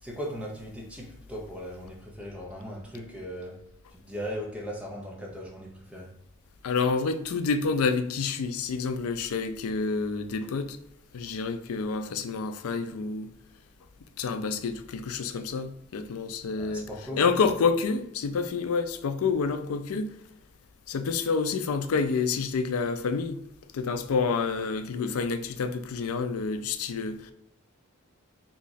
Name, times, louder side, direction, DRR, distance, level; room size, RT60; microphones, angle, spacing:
voice 1, 0.0-3.6 3.9-6.1 16.6-17.2, equal, 5° right, 0.6 m, -38 dB
voice 2, 6.6-10.8 11.1-13.3 14.2-16.9 17.2-20.1 20.9-23.4 23.7-27.3, left 4 dB, 80° left, 0.4 m, -28 dB
2.9 x 2.4 x 4.0 m
head